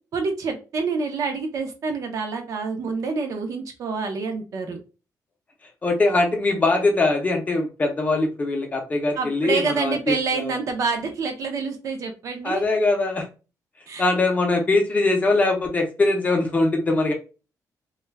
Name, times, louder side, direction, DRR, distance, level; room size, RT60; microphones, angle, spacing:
voice 1, 0.1-4.8 9.2-12.6 13.9-14.1, right 4 dB, 55° right, 5 dB, 0.6 m, -27 dB
voice 2, 5.8-10.6 12.4-13.3 14.0-17.1, left 2 dB, 25° left, 3 dB, 0.6 m, -22 dB
2.3 x 2.1 x 3.2 m, 0.32 s
wide cardioid pair, 170°, 7 cm